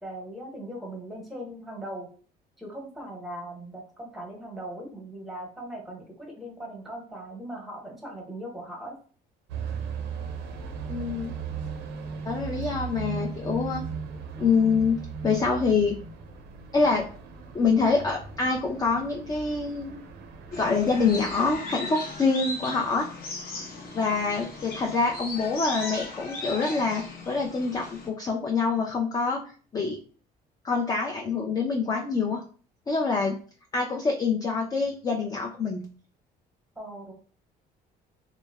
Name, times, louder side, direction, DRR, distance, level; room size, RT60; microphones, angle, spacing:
voice 1, 0.0-2.1 2.6-9.0 36.8-37.1, right 1 dB, ahead, -1 dB, 0.9 m, -39 dB
sound 1, 9.5-21.6, right 5 dB, 90° right, 0.5 m, -37 dB
voice 2, 10.9-11.3 12.2-13.8 14.4-16.0 16.7-17.1 17.5-20.0 20.5-23.1 23.9-29.4 29.7-30.0 30.6-32.4 32.9-33.4 33.7-35.8, left 4 dB, 20° left, 1 dB, 0.3 m, -26 dB
sound 2, 20.5-28.1, left 3 dB, 65° left, 0.8 m, -37 dB
3.0 x 2.0 x 2.2 m, 0.41 s
cardioid pair, 110°, 17 cm